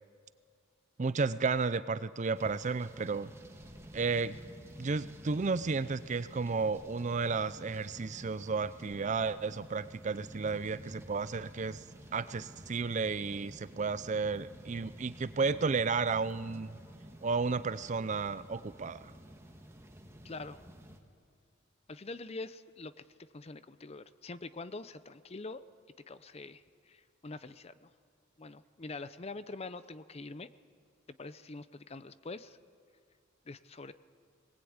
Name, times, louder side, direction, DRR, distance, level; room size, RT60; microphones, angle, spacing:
voice 1, 1.0-3.3 3.9-4.4 4.8-11.8 12.1-16.8 17.2-19.1, right 4 dB, 35° right, 15 dB, 0.5 m, -32 dB
sound 1, 2.3-21.0, equal, 15° right, 1.5 m, -51 dB
voice 2, 20.2-20.6 21.9-25.6 26.1-27.9 28.4-30.5 31.2-32.6 33.5-33.9, left 3 dB, 30° left, 14 dB, 0.6 m, -45 dB
20.0 x 19.5 x 8.8 m, 2.3 s
head